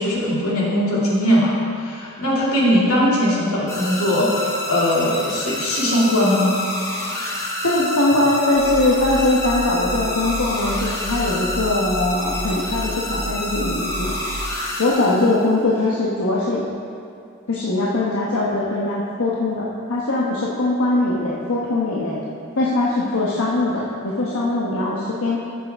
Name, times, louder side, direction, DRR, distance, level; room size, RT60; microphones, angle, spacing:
voice 1, 0.0-6.6, equal, 90° left, -6 dB, 2.5 m, -20 dB
sound 1, 3.7-15.5, left 1 dB, 15° left, 1.2 m, -28 dB
voice 2, 7.6-14.2 14.8-16.6 17.5-22.2 22.6-25.4, left 2 dB, 70° left, -5 dB, 1.0 m, -21 dB
sound 2, 8.5-14.4, right 1 dB, 10° right, 2.3 m, -32 dB
11.5 x 7.6 x 3.5 m, 2.4 s
head